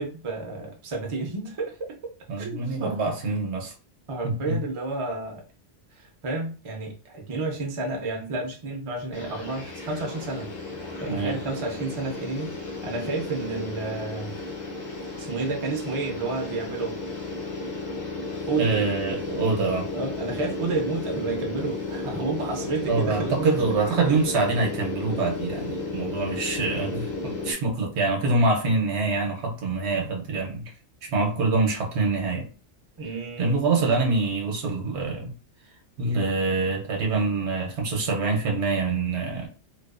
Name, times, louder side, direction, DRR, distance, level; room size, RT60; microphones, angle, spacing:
voice 1, 0.0-2.0 2.4-3.0 4.1-5.4 5.9-10.5 11.0-14.3 15.2-17.0 18.4-18.7 19.9-23.7 33.0-33.9, right 3 dB, 40° right, 0.5 m, -31 dB
voice 2, 2.3-3.7 4.2-4.6 11.1-11.4 18.6-19.9 22.9-30.7 31.0-32.5 33.4-35.3 36.0-39.5, right 3 dB, 70° right, 0.9 m, -25 dB
sound 1, 9.1-27.5, left 3 dB, 45° left, 0.7 m, -33 dB
2.4 x 2.3 x 2.4 m
omnidirectional pair, 1.2 m